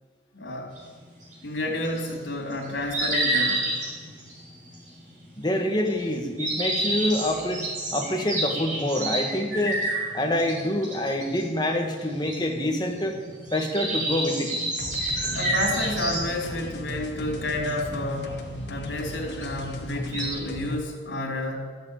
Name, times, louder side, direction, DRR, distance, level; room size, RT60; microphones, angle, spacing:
voice 1, 0.3-0.7 1.4-3.6 15.3-18.3 18.7-21.7, left 1 dB, 85° left, 0 dB, 3.4 m, -30 dB
sound 1, 0.8-20.3, right 1 dB, 45° right, 4.5 m, -30 dB
voice 2, 5.4-7.6 7.9-9.8 10.1-13.2 13.5-14.6, left 1 dB, 25° left, 2 dB, 1.6 m, -26 dB
sound 2, 14.8-20.8, equal, 70° left, 1.4 m, -36 dB
13.0 x 8.0 x 8.9 m, 1.5 s
head